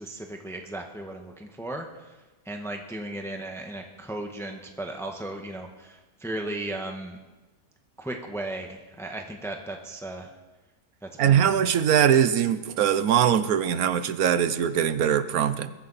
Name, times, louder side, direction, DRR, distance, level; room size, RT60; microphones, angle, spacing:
voice 1, 0.0-2.2 2.4-7.2 8.0-10.3 11.0-11.7, right 1 dB, ahead, 2 dB, 1.4 m, -36 dB
voice 2, 11.2-15.7, right 9 dB, 80° right, 13 dB, 1.3 m, -22 dB
21.5 x 15.0 x 4.3 m, 1.1 s
omnidirectional pair, 1.5 m